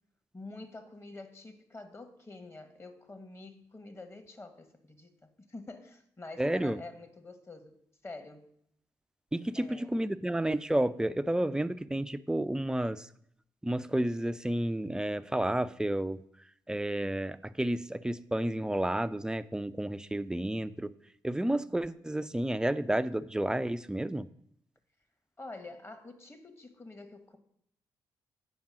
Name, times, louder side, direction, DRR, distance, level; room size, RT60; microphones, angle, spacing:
voice 1, 0.3-7.8 8.0-8.5 9.5-10.0 25.4-27.4, left 2 dB, 25° left, 9 dB, 1.4 m, -47 dB
voice 2, 6.4-6.8 9.3-13.1 13.6-16.2 16.7-20.9 21.2-24.3, right 1 dB, 5° right, 15 dB, 0.5 m, -31 dB
8.7 x 5.5 x 6.1 m, 0.71 s
hypercardioid pair, 40°, 10 cm